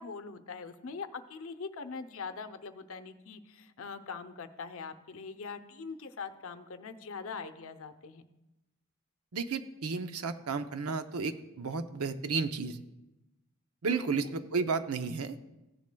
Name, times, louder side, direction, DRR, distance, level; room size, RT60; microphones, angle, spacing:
voice 1, 0.0-8.3 13.8-14.3, left 5 dB, 65° left, 9 dB, 0.7 m, -42 dB
voice 2, 9.3-12.8 13.8-15.4, right 4 dB, 85° right, 10 dB, 0.7 m, -32 dB
16.0 x 10.5 x 2.3 m, 0.99 s
head